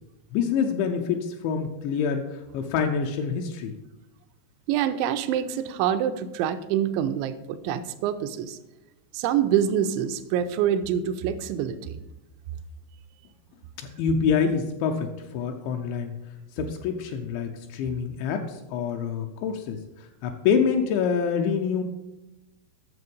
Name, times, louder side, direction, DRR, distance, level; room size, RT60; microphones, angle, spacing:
voice 1, 0.3-3.7 13.8-16.1 16.5-21.8, left 6 dB, 80° left, 3 dB, 2.9 m, -26 dB
voice 2, 4.7-8.6 9.1-12.0, right 9 dB, 85° right, 10 dB, 2.8 m, -26 dB
9.6 x 7.0 x 5.2 m, 1.0 s
omnidirectional pair, 5.4 m